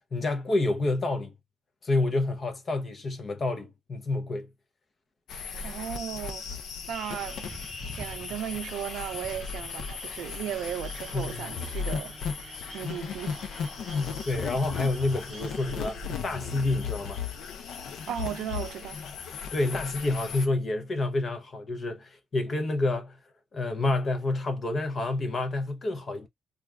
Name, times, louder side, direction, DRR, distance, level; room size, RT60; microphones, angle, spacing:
voice 1, 0.1-1.3 1.8-4.5 11.1-11.6 14.3-17.2 19.5-23.2 23.5-26.3, left 2 dB, 35° left, 0.8 m, -28 dB
sound 1, 5.3-20.5, left 6 dB, 70° left, 0.6 m, -36 dB
voice 2, 5.6-6.4 6.9-7.6 8.0-13.5 18.1-19.0, right 10 dB, 85° right, 0.5 m, -36 dB
sound 2, 6.9-15.9, right 3 dB, 20° right, 0.5 m, -48 dB
2.4 x 2.4 x 3.3 m
cardioid pair, 125°, 0 cm